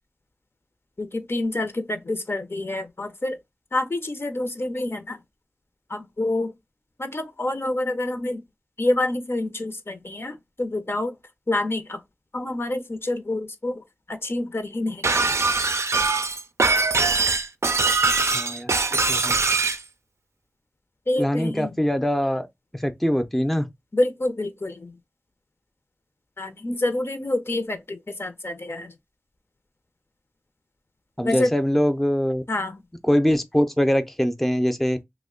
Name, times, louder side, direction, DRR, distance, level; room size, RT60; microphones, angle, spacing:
voice 1, 1.0-3.4 3.7-5.2 5.9-6.5 7.0-8.4 8.8-11.2 11.5-12.0 12.3-15.3 21.1-21.8 23.9-25.0 26.4-28.9 31.2-31.5 32.5-32.8, left 1 dB, 60° left, 0.6 m, -27 dB
Shatter, 15.0-19.8, right 3 dB, 80° right, 0.4 m, -22 dB
voice 2, 18.3-18.7 19.1-19.4 21.2-22.5 22.7-23.7 31.2-32.4 33.1-35.0, equal, 5° left, 0.4 m, -23 dB
3.0 x 2.1 x 3.6 m
wide cardioid pair, 50°, 5 cm